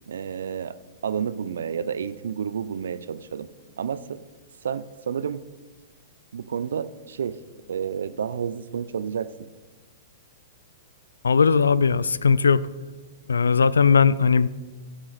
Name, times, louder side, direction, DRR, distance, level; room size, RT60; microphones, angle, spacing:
voice 1, 0.1-0.8 1.0-3.5 3.8-4.2 4.6-5.4 6.3-7.4 7.7-9.3, right 7 dB, 70° right, 15 dB, 0.6 m, -30 dB
voice 2, 11.2-12.6 13.3-14.5, left 5 dB, 80° left, 19 dB, 0.4 m, -18 dB
14.5 x 7.7 x 4.2 m, 1.3 s
hypercardioid pair, 110°, 0 cm